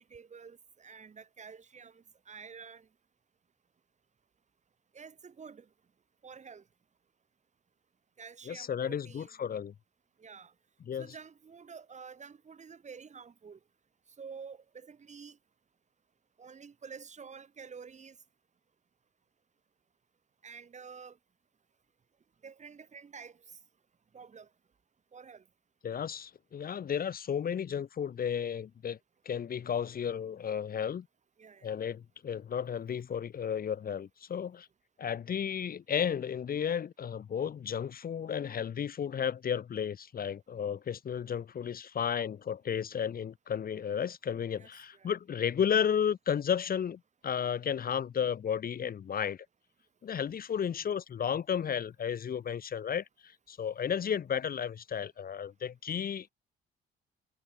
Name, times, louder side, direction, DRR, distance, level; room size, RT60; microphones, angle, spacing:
voice 1, 0.0-2.9 4.9-5.7 6.2-6.6 8.2-9.3 10.2-10.5 11.0-13.6 14.2-15.4 16.4-18.2 20.4-21.2 22.4-23.4 24.1-24.5 25.1-25.4 31.4-31.7 44.6-45.1, right 6 dB, 35° right, 1.5 m, -49 dB
voice 2, 8.5-9.7 10.9-11.1 25.8-29.0 29.2-31.1 31.6-34.7 35.0-49.5 50.0-56.3, left 8 dB, 50° left, 1.1 m, -33 dB
cardioid pair, 90°, 20 cm